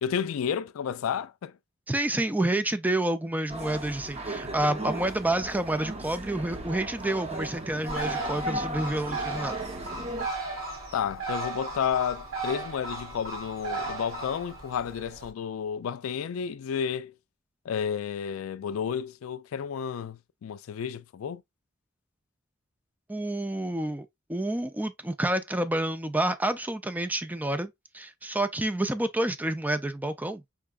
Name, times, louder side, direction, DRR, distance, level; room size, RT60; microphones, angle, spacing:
voice 1, 0.0-1.5 10.9-17.1 17.7-21.4, left 7 dB, 85° left, 0.3 m, -31 dB
voice 2, 1.9-9.6 23.1-30.4, right 1 dB, 10° right, 0.4 m, -29 dB
sound 1, 3.5-10.3, right 1 dB, 30° right, 0.8 m, -36 dB
Bird, 7.9-15.3, right 3 dB, 85° right, 2.7 m, -36 dB
4.7 x 3.4 x 2.3 m
head